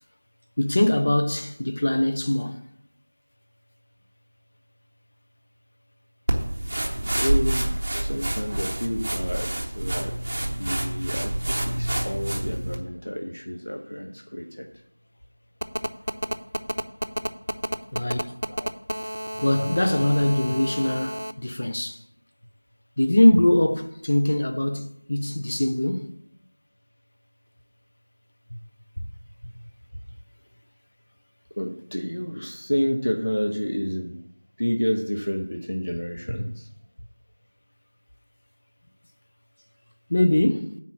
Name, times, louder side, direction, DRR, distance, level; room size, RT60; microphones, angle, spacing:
voice 1, 0.6-2.6 17.9-18.4 19.4-22.0 23.0-26.1 40.1-40.8, left 1 dB, 25° left, 0.5 m, -22 dB
sound 1, 6.3-12.8, right 1 dB, 20° right, 0.8 m, -27 dB
voice 2, 7.0-14.7 18.5-18.7 19.6-19.7 28.5-28.6 29.0-29.1 29.9-30.0 31.6-34.2 34.6-36.7, equal, 75° left, 1.1 m, -30 dB
Telephone, 15.6-21.3, right 1 dB, 60° right, 0.7 m, -30 dB
9.6 x 4.4 x 7.3 m
figure-of-eight pair, 180°, 0 cm